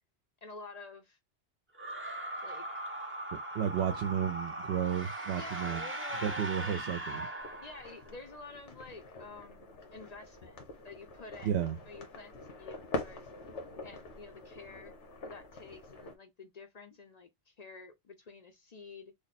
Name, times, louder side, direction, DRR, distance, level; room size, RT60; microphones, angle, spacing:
voice 1, 0.4-1.2 2.4-2.7 5.3-6.8 7.6-11.6 11.8-13.3 13.8-14.9 15.2-19.1, left 3 dB, 50° left, 0.5 m, -49 dB
sound 1, 1.7-8.2, right 1 dB, 15° right, 0.5 m, -39 dB
voice 2, 3.3-5.8 6.2-7.2 11.4-11.8, right 9 dB, 70° right, 0.8 m, -32 dB
sound 2, 7.4-16.1, left 2 dB, 85° left, 1.3 m, -44 dB
3.3 x 2.1 x 4.0 m
omnidirectional pair, 1.2 m